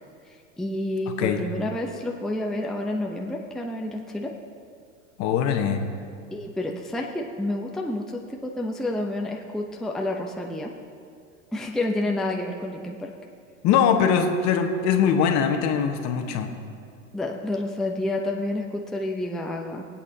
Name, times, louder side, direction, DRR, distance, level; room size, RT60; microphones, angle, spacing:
voice 1, 0.6-4.3 6.3-10.7 11.5-13.1 17.1-19.9, left 1 dB, ahead, 0 dB, 0.7 m, -29 dB
voice 2, 5.2-5.8 13.6-16.5, left 7 dB, 45° left, 5 dB, 1.3 m, -22 dB
22.5 x 8.6 x 2.8 m, 2.3 s
hypercardioid pair, 105°, 40 cm